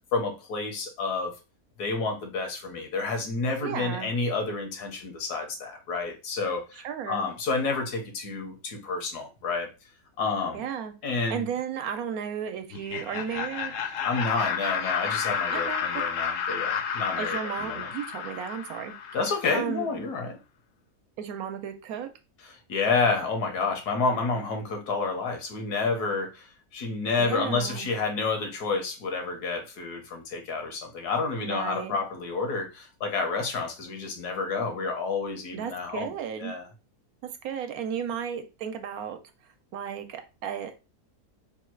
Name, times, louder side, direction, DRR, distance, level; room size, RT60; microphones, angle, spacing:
voice 1, 0.1-1.3 1.8-9.7 10.2-10.6 11.0-11.5 14.0-17.9 19.1-20.4 22.7-36.1 36.4-36.7, left 4 dB, 80° left, 4 dB, 1.5 m, -29 dB
voice 2, 3.6-4.1 6.8-7.3 10.5-10.9 11.3-13.7 15.5-16.0 17.2-18.9 19.5-19.9 21.2-22.1 27.2-27.9 31.4-32.0 35.5-36.5 37.4-39.2 39.7-40.8, right 8 dB, 75° right, 7 dB, 1.0 m, -34 dB
Laughter, 12.7-19.5, left 7 dB, 65° left, 0.9 m, -31 dB
3.5 x 2.3 x 4.4 m, 0.29 s
omnidirectional pair, 1.7 m